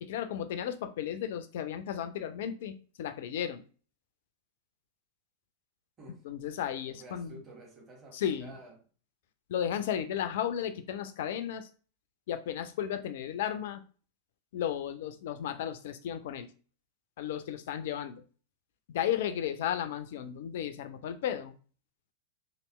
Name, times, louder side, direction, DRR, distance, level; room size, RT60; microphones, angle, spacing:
voice 1, 0.0-3.6 6.2-7.3 8.1-8.5 9.5-11.7 12.3-13.9 14.5-16.5 17.2-18.2 18.9-21.5, left 9 dB, 55° left, 0.4 m, -34 dB
voice 2, 6.8-8.8, right 2 dB, 25° right, 1.5 m, -51 dB
3.1 x 2.8 x 3.0 m
figure-of-eight pair, 90°, 0 cm